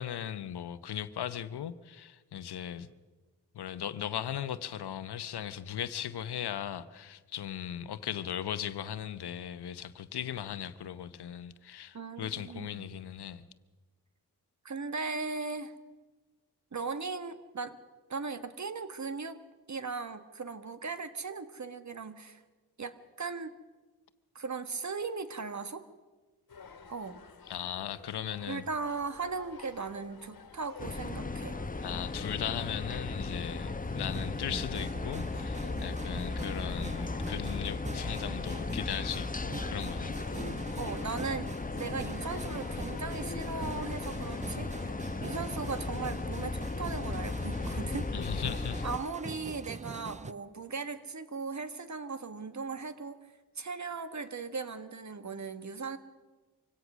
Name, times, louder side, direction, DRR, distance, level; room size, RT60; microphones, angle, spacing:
voice 1, 0.0-2.9 3.5-13.4 27.5-28.6 31.8-40.1 48.1-48.8, left 10 dB, 75° left, 1.0 m, -38 dB
voice 2, 11.9-12.9 14.6-15.7 16.7-17.8 18.1-19.4 19.7-22.4 22.8-23.5 24.3-25.9 26.9-27.2 28.5-31.6 40.4-48.4 48.8-56.0, right 4 dB, 45° right, 1.6 m, -38 dB
sound 1, 26.5-44.9, left 5 dB, 60° left, 1.8 m, -51 dB
sound 2, 30.8-49.0, left 3 dB, 20° left, 1.0 m, -36 dB
sound 3, 34.0-50.3, right 3 dB, 20° right, 0.7 m, -44 dB
24.5 x 17.0 x 6.2 m
cardioid pair, 45°, 39 cm